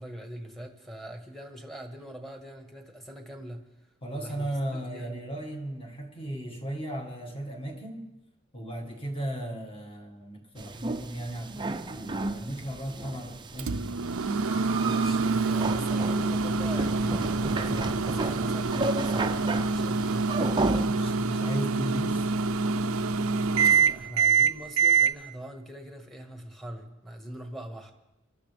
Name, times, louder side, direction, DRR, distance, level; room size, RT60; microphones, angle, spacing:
voice 1, 0.0-3.6 4.1-5.3 14.8-19.3 19.6-20.3 23.6-27.9, equal, ahead, 3 dB, 1.4 m, -42 dB
voice 2, 4.0-8.0 8.5-13.9 20.9-22.3, right 1 dB, 25° left, 1 dB, 1.9 m, -36 dB
sound 1, 10.6-20.9, right 2 dB, 20° right, 0.5 m, -33 dB
Microwave oven, 13.6-25.1, right 4 dB, 70° right, 0.6 m, -26 dB
25.0 x 12.5 x 3.4 m, 0.94 s
head